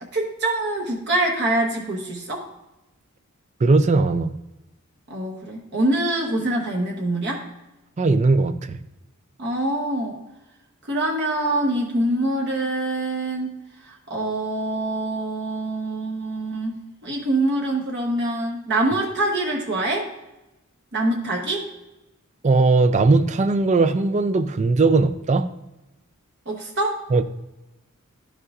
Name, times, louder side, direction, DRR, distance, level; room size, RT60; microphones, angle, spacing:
voice 1, 0.0-2.4 5.1-7.4 9.4-10.2 10.9-13.6 13.8-20.1 20.9-21.6 26.5-27.0, right 1 dB, 50° right, -1 dB, 1.0 m, -25 dB
voice 2, 3.6-4.3 8.0-8.8 22.4-25.5 27.1-27.2, right 3 dB, 35° right, 11 dB, 0.4 m, -18 dB
12.0 x 5.5 x 2.4 m, 0.99 s
head